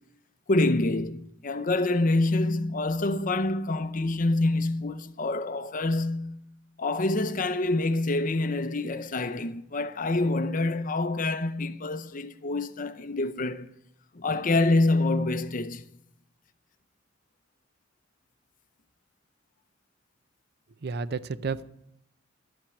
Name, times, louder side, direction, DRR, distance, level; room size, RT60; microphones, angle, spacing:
voice 1, 0.5-6.4 6.8-13.7 14.1-15.8, left 2 dB, 45° left, 0.7 m, -26 dB
voice 2, 20.8-21.6, right 4 dB, 55° right, 0.6 m, -31 dB
12.0 x 8.9 x 8.4 m
head